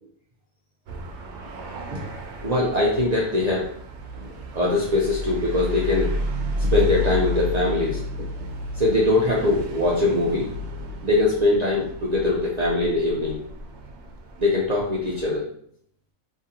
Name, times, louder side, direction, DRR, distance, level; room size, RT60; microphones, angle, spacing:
sound 1, 0.9-15.4, left 2 dB, 65° right, 0.8 m, -32 dB
voice 1, 2.4-3.7 4.2-6.1 6.6-8.0 8.8-10.5 11.0-13.4 14.4-15.5, left 2 dB, 80° right, -4 dB, 0.3 m, -22 dB
2.9 x 2.5 x 2.7 m, 0.65 s
omnidirectional pair, 1.4 m